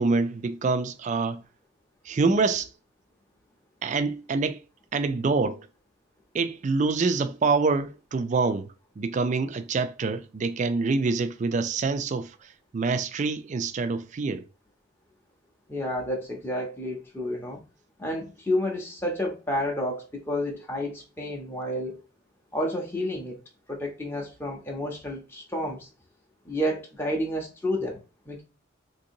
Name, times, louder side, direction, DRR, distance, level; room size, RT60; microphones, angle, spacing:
voice 1, 0.0-1.4 2.1-2.7 3.8-4.6 4.9-5.7 6.3-8.7 9.0-14.4, right 4 dB, 35° right, 0.3 m, -26 dB
voice 2, 15.7-17.6 18.0-22.0 22.5-23.4 23.7-25.9 26.4-28.0 28.3-28.4, left 1 dB, 10° left, 0.6 m, -30 dB
3.7 x 2.6 x 2.6 m
head